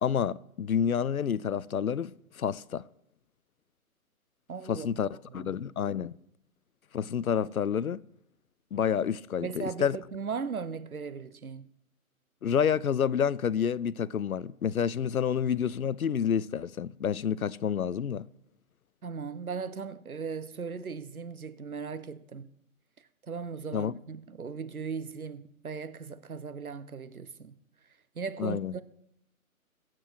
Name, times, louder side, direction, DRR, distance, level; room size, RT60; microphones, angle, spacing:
voice 1, 0.0-2.8 4.7-6.1 6.9-8.0 8.7-10.0 12.4-18.3 23.7-23.9 28.4-28.7, left 8 dB, 75° left, 0.6 m, -29 dB
voice 2, 4.5-5.6 9.4-11.7 19.0-22.5 23.0-27.6 28.1-28.8, right 5 dB, 75° right, 1.1 m, -38 dB
22.5 x 7.6 x 4.7 m
figure-of-eight pair, 145°, 44 cm